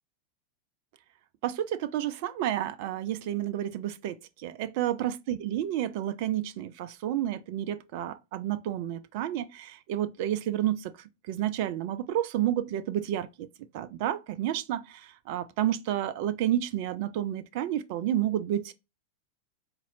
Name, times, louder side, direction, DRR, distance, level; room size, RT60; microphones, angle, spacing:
voice 1, 1.4-4.2 4.4-10.9 11.3-13.5 13.7-18.7, right 12 dB, 50° right, 0.4 m, -30 dB
4.1 x 2.9 x 2.6 m
figure-of-eight pair, 90°, 0 cm